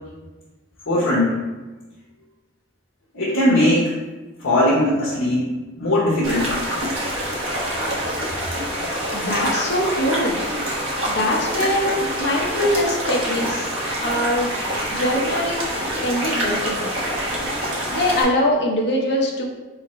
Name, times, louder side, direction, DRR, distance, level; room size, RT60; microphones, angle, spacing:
voice 1, 0.9-1.3 3.1-3.9 4.4-5.5 5.8-6.5, left 1 dB, 85° left, -8 dB, 1.1 m, -19 dB
sound 1, 6.2-18.2, equal, 75° right, 1.2 m, -26 dB
voice 2, 9.1-10.4 11.1-11.9 12.2-13.7 14.0-14.5 14.9-15.7 16.0-16.8 17.9-19.5, left 1 dB, 55° left, 0 dB, 0.7 m, -22 dB
4.1 x 3.8 x 3.1 m, 1.2 s
head